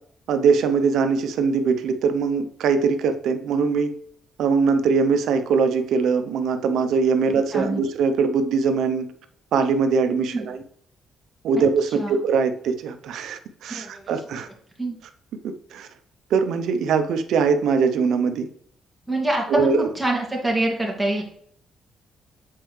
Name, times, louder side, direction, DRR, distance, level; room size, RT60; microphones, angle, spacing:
voice 1, 0.3-3.9 4.4-9.1 9.5-10.6 11.4-14.5 15.7-15.9 16.3-18.5 19.5-19.9, right 5 dB, 75° right, 9 dB, 0.6 m, -21 dB
voice 2, 13.7-14.0 14.8-14.9 19.1-21.2, right 2 dB, 5° right, -2 dB, 2.4 m, -25 dB
7.5 x 4.5 x 3.2 m, 0.64 s
cardioid pair, 90°, 0 cm